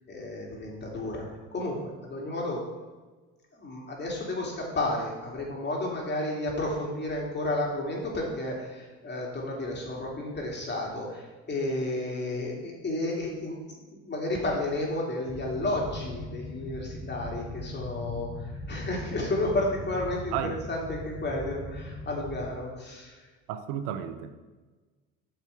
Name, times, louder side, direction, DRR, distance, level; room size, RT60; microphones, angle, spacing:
voice 1, 0.1-2.6 3.5-23.3, left 1 dB, 30° left, -2 dB, 2.8 m, -32 dB
sound 1, 15.2-22.5, left 2 dB, 75° left, 2.4 m, -39 dB
voice 2, 23.5-24.3, right 9 dB, 75° right, 10 dB, 0.8 m, -32 dB
9.4 x 6.6 x 3.5 m, 1.3 s
hypercardioid pair, 70°, 34 cm